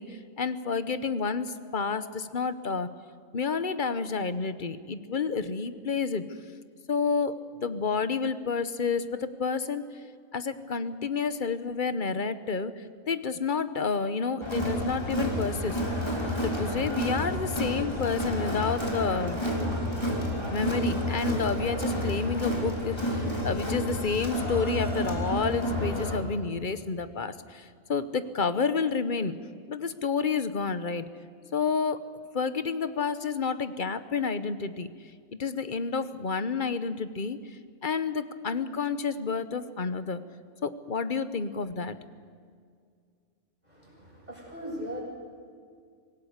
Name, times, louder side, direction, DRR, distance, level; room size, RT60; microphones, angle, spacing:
voice 1, 0.0-2.9 3.3-6.3 6.9-9.8 10.3-15.8 16.4-19.4 20.5-29.3 29.7-31.0 31.5-32.0 32.3-34.9 35.4-37.4 37.8-40.2 40.6-42.0, left 5 dB, 40° left, 12 dB, 1.0 m, -30 dB
Crowd, 14.4-26.2, equal, 20° left, 3.4 m, -30 dB
voice 2, 43.6-45.0, equal, 30° right, -4 dB, 7.9 m, -39 dB
25.5 x 18.0 x 8.1 m, 2.1 s
omnidirectional pair, 1.3 m